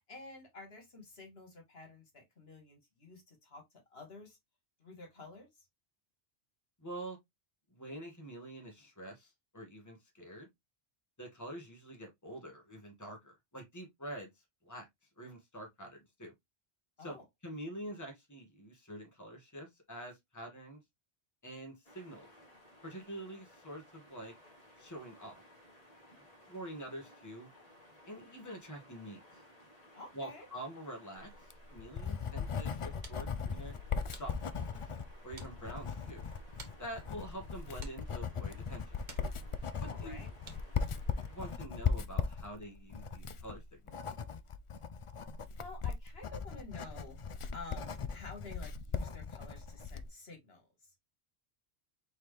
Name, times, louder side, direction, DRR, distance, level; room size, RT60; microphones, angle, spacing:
voice 1, 0.1-3.6 3.9-4.4 4.8-5.7 17.0-17.2 29.9-30.5 39.8-40.3 45.6-50.7, left 3 dB, 70° left, 1.9 m, -50 dB
voice 2, 6.8-7.2 7.7-10.5 11.2-14.3 14.6-14.9 15.2-16.3 17.0-17.2 17.4-20.8 21.4-22.3 22.8-24.3 24.8-25.4 26.2-27.5 28.1-29.4 30.1-33.7 34.1-34.8 35.2-36.2 36.8-39.0 39.8-40.3 41.3-43.8, right 1 dB, 15° left, 1.6 m, -46 dB
sound 1, 21.8-41.6, left 1 dB, 35° left, 1.7 m, -59 dB
Writing, 31.3-50.1, left 6 dB, 55° left, 0.3 m, -38 dB
sound 2, 32.6-40.9, right 3 dB, 45° right, 1.2 m, -58 dB
4.4 x 3.7 x 3.2 m
omnidirectional pair, 1.1 m